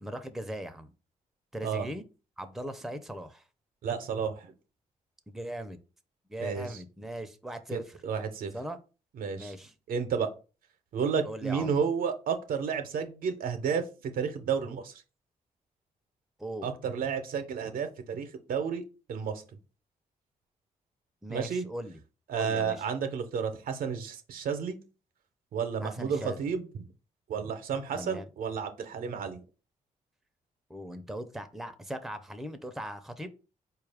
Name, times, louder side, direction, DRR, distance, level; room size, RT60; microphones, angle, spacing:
voice 1, 0.0-0.9 1.5-2.0 2.4-3.4 5.3-5.8 6.3-8.0 8.5-8.8 9.3-9.7 11.2-11.8 16.4-16.7 21.2-22.0 22.3-22.9 25.8-26.4 27.9-28.3 30.7-33.3, right 1 dB, ahead, 8 dB, 0.5 m, -39 dB
voice 2, 3.8-4.5 6.4-6.7 7.7-8.5 9.2-9.5 9.9-10.3 10.9-13.9 14.1-15.0 16.6-18.8 19.1-19.4 21.3-21.6 22.3-24.8 25.5-26.6 27.3-29.4, right 6 dB, 75° right, 8 dB, 0.6 m, -31 dB
4.3 x 2.3 x 3.4 m, 0.33 s
cardioid pair, 65°, 15 cm